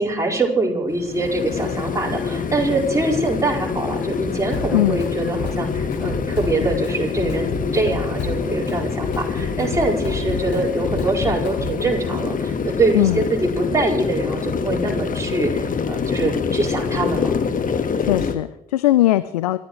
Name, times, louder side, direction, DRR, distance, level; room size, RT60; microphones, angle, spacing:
voice 1, 0.0-17.3, right 2 dB, 15° right, -3 dB, 5.0 m, -23 dB
sound 1, 0.9-18.4, left 5 dB, 45° left, 1.5 m, -25 dB
Drum kit, 4.5-5.1 5.4-11.9, left 4 dB, 65° left, 4.4 m, -31 dB
voice 2, 18.0-19.6, left 15 dB, 85° left, 16 dB, 0.4 m, -19 dB
26.0 x 13.5 x 3.2 m, 0.84 s
hypercardioid pair, 45°, 19 cm